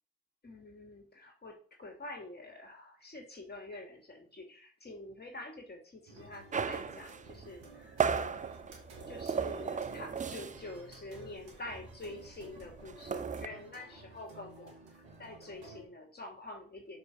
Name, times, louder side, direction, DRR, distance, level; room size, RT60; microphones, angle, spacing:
voice 1, 0.4-8.4 9.1-14.7 15.2-17.0, left 2 dB, 30° left, 1 dB, 2.8 m, -47 dB
sound 1, 6.1-15.8, right 2 dB, 75° right, 1.9 m, -53 dB
sound 2, 6.5-10.8 11.1-11.3 11.5-13.5, right 6 dB, 25° right, 0.6 m, -35 dB
6.2 x 6.2 x 5.3 m, 0.42 s
figure-of-eight pair, 40°, 31 cm